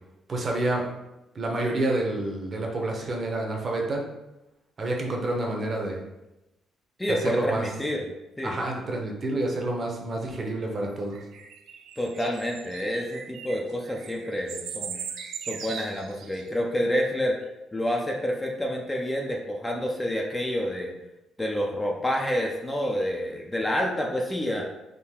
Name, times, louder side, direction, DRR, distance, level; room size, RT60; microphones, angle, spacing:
voice 1, 0.3-0.9 1.3-4.0 4.8-6.0 7.1-7.6 8.4-11.2, right 2 dB, 35° right, 0 dB, 0.9 m, -28 dB
voice 2, 7.0-8.1 8.4-8.7 12.0-15.0 15.5-17.3 17.7-20.9 21.4-24.7, equal, 10° left, 0 dB, 0.6 m, -28 dB
sound 1, 11.1-16.4, right 7 dB, 70° right, 0.4 m, -39 dB
3.8 x 2.8 x 4.3 m, 0.96 s
cardioid pair, 120°, 0 cm